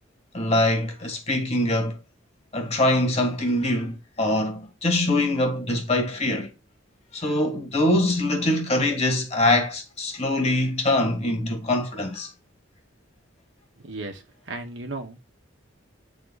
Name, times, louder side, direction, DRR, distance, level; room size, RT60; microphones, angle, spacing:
voice 1, 0.3-2.0 2.5-6.5 7.1-12.3, left 1 dB, 35° left, 1.7 m, -23 dB
voice 2, 13.8-14.2 14.5-15.2, right 2 dB, 65° right, 1.4 m, -34 dB
8.3 x 3.9 x 4.0 m
head